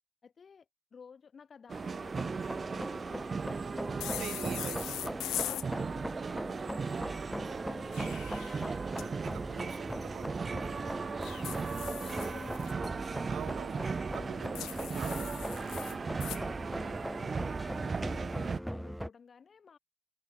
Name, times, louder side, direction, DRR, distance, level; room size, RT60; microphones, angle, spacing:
voice 1, 0.2-4.2 5.5-8.2 11.0-13.0 13.6-14.4 16.4-19.8, left 6 dB, 45° left, 7.2 m, -56 dB
sound 1, 1.7-18.6, right 5 dB, 35° right, 1.1 m, -37 dB
sound 2, 2.0-19.1, equal, ahead, 0.3 m, -41 dB
sound 3, 4.0-5.7 7.7-9.1 11.2-12.7 14.6-16.4, left 14 dB, 85° left, 1.2 m, -41 dB
voice 2, 4.1-5.3 7.1-7.3 8.9-11.1 12.2-12.3 13.3-15.4 15.7-16.2, right 10 dB, 70° right, 2.0 m, -46 dB
cardioid pair, 90°, 0 cm